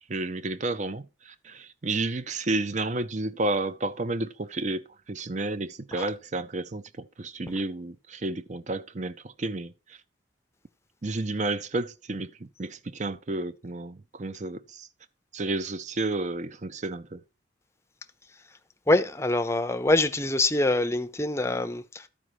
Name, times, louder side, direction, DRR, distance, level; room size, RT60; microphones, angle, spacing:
voice 1, 0.1-10.0 11.0-14.9 15.3-17.2, right 2 dB, 40° right, 0.6 m, -31 dB
voice 2, 18.9-22.1, left 2 dB, 15° left, 0.6 m, -25 dB
12.5 x 5.0 x 4.7 m
head